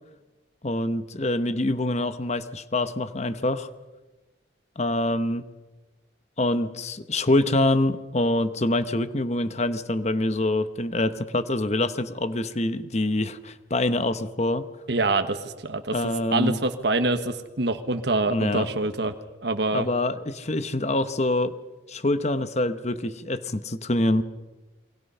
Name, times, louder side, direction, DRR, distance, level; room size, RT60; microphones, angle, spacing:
voice 1, 0.6-3.7 4.8-5.5 6.4-14.6 15.9-16.6 18.3-18.7 19.7-21.5 21.9-24.2, left 1 dB, 35° left, 11 dB, 1.0 m, -25 dB
voice 2, 14.9-15.9 16.3-19.1 19.4-19.9, right 2 dB, 60° right, 8 dB, 1.3 m, -25 dB
28.5 x 23.5 x 5.6 m, 1.2 s
head